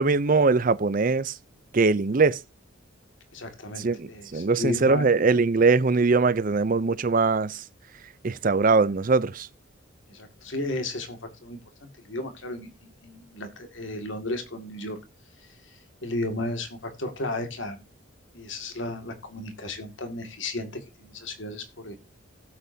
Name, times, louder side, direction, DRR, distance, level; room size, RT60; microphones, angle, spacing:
voice 1, 0.0-1.3 1.7-2.4 3.8-7.6 8.2-9.5, right 4 dB, 40° right, 0.5 m, -22 dB
voice 2, 3.3-5.1 10.1-15.0 16.0-17.8 18.3-22.0, left 2 dB, 65° left, 2.2 m, -34 dB
16.0 x 7.9 x 2.7 m
head